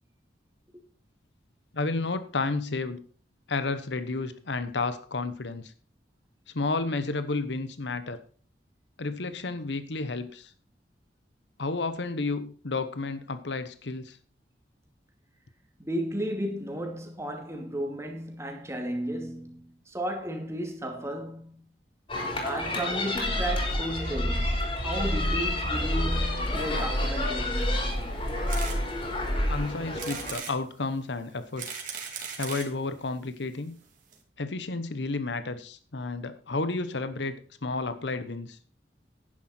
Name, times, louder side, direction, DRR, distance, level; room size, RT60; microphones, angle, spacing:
voice 1, 1.7-3.0 3.5-5.7 6.5-8.2 9.0-10.5 11.6-14.2 29.5-31.7 32.4-33.7 34.4-38.6, left 3 dB, 90° left, 1.0 m, -31 dB
voice 2, 15.8-21.7 22.4-28.2, equal, 15° right, 2.5 m, -34 dB
sound 1, 22.1-30.3, left 2 dB, 30° left, 4.2 m, -32 dB
sound 2, 23.2-29.6, equal, 60° left, 6.1 m, -30 dB
sound 3, 28.5-28.8 29.3-29.4 30.0-30.6 31.3-32.7 33.5-33.6 33.8-33.9 34.1-34.2, right 6 dB, 50° right, 2.8 m, -37 dB
11.0 x 9.8 x 4.4 m
head